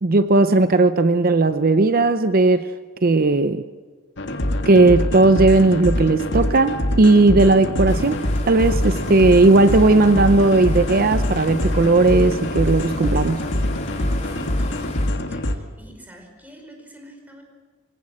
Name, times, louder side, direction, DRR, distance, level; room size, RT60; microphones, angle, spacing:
voice 1, 0.0-2.7 3.0-3.6 4.7-13.4, right 2 dB, 50° right, 11 dB, 0.7 m, -16 dB
sound 1, 4.2-15.6, left 1 dB, 65° left, 1.9 m, -24 dB
sound 2, 7.9-15.1, left 1 dB, 35° left, 2.8 m, -34 dB
voice 2, 14.2-17.4, right 1 dB, 10° right, 2 dB, 5.0 m, -45 dB
24.5 x 17.0 x 7.8 m, 1.5 s
head